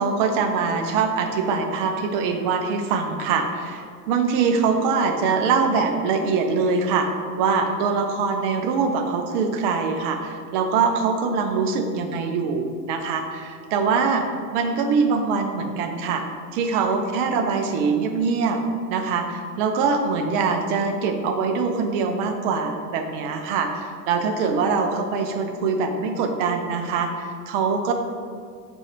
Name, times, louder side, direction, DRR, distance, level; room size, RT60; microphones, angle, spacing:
voice 1, 0.0-7.1 7.4-14.3 14.5-16.2 16.5-18.6 18.9-27.9, right 5 dB, 35° right, 4 dB, 0.4 m, -23 dB
4.2 x 2.3 x 4.4 m, 2.1 s
figure-of-eight pair, 80°, 48 cm